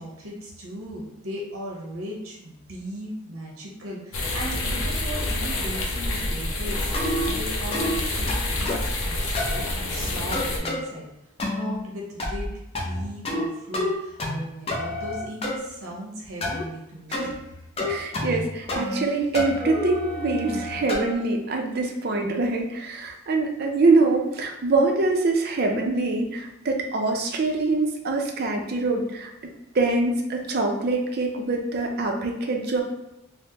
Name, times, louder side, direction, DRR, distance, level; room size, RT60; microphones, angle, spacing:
voice 1, 0.0-11.1 11.5-12.5 12.8-17.3 17.9-18.0 18.3-18.4, equal, 90° right, -2 dB, 0.8 m, -37 dB
sound 1, 4.1-10.6, left 1 dB, 70° left, 0.6 m, -28 dB
sound 2, 6.9-7.3 7.7-8.0 8.3-8.9 9.3-9.6 10.3-10.8 11.4-11.7 12.2-12.5 12.7-13.5 13.7-14.4 14.7-15.6 16.4-16.6 17.1-17.3 17.8-18.4 18.7-19.1 19.3-21.1, left 1 dB, 30° left, 0.4 m, -28 dB
voice 2, 17.9-29.3 29.7-32.8, right 3 dB, 50° right, 2 dB, 0.5 m, -24 dB
3.4 x 2.0 x 2.8 m, 0.88 s
head